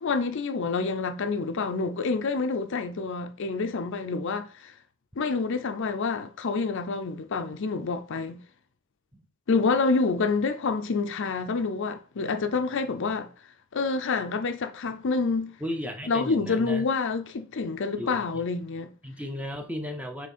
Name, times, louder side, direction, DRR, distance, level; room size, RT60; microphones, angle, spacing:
voice 1, 0.0-4.7 5.2-8.4 9.5-13.3 13.7-15.6 16.1-18.9, left 4 dB, 55° left, 0.5 m, -27 dB
voice 2, 15.6-16.9 18.0-18.4 19.0-20.3, equal, 5° right, 0.6 m, -35 dB
7.1 x 3.3 x 4.2 m
head